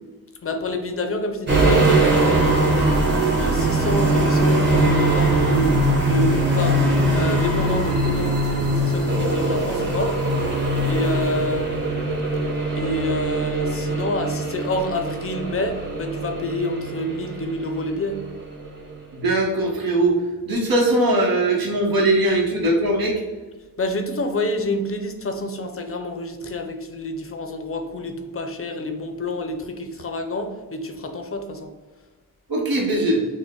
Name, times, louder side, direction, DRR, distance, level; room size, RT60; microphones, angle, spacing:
voice 1, 0.4-6.8 7.1-10.2 10.8-11.7 12.7-18.2 23.8-31.7, left 1 dB, 40° left, 6 dB, 0.5 m, -28 dB
sound 1, 1.5-18.3 18.6-18.8, right 1 dB, 30° right, 1.2 m, -21 dB
voice 2, 19.1-23.2 32.5-33.3, right 1 dB, 75° right, -1 dB, 1.1 m, -20 dB
6.0 x 2.1 x 3.6 m, 1.3 s
wide cardioid pair, 165°, 36 cm